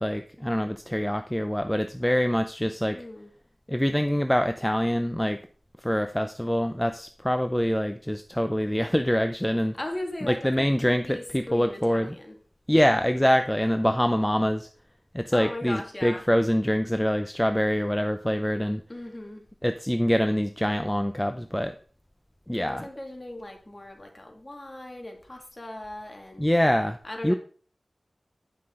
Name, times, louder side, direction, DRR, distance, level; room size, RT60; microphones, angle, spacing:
voice 1, 0.0-3.0 3.7-5.4 5.8-9.7 10.3-12.1 12.7-14.7 15.1-18.8 19.6-21.7 22.5-22.8 26.4-27.0 27.2-27.3, equal, 10° left, 8 dB, 0.5 m, -25 dB
voice 2, 2.9-3.3 9.7-12.4 15.3-16.2 18.9-19.5 22.6-26.5 27.0-27.4, left 1 dB, 35° left, 3 dB, 2.1 m, -38 dB
9.7 x 5.7 x 3.7 m, 0.42 s
wide cardioid pair, 55°, 0 cm